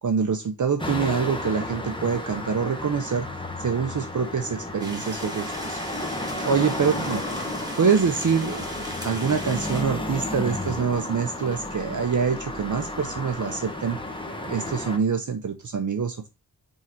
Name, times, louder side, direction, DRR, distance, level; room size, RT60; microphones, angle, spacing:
voice 1, 0.0-3.3 3.6-5.8 6.4-7.2 7.8-8.7 9.0-14.0 14.4-16.3, right 6 dB, 50° right, 4 dB, 0.8 m, -25 dB
sound 1, 0.8-15.0, left 1 dB, 10° left, 1.1 m, -32 dB
sound 2, 4.8-9.8, right 1 dB, 10° right, 1.9 m, -39 dB
5.9 x 3.8 x 4.3 m, 0.25 s
wide cardioid pair, 135°, 40 cm